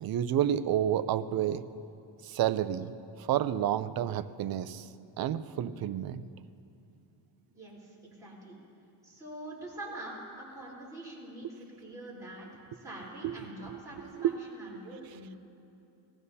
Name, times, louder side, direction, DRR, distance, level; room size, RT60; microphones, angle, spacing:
voice 1, 0.0-1.6 2.3-2.9 3.3-4.8 5.2-6.2 13.2-14.3, right 11 dB, 55° right, 13 dB, 0.5 m, -30 dB
voice 2, 7.5-8.6 9.0-15.4, right 1 dB, 5° right, -8 dB, 3.7 m, -45 dB
19.5 x 15.5 x 2.8 m, 2.7 s
cardioid pair, 170°, 46 cm